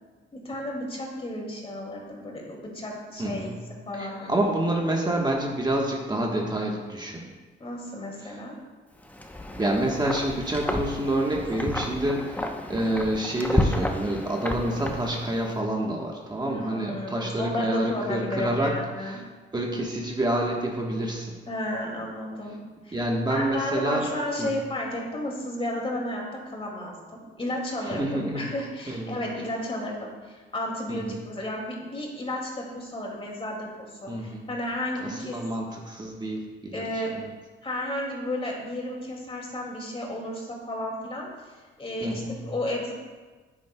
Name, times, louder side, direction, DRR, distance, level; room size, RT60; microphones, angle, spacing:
voice 1, 0.3-3.5 3.9-4.4 7.6-8.6 16.4-19.2 21.5-22.6 22.8-23.0 23.3-35.4 36.7-37.2 37.6-42.9, left 1 dB, 30° left, -1 dB, 2.2 m, -33 dB
voice 2, 3.2-3.5 3.9-7.3 8.2-8.4 9.6-19.2 19.5-21.4 22.9-24.1 24.4-24.5 27.8-28.5 28.9-29.2 30.9-31.2 34.1-34.5 35.0-37.3 42.0-42.5, right 1 dB, 20° right, -1 dB, 1.2 m, -28 dB
Wind, 9.0-15.5, left 1 dB, 10° left, 0.8 m, -31 dB
9.7 x 9.2 x 2.2 m, 1.4 s
cardioid pair, 90°, 20 cm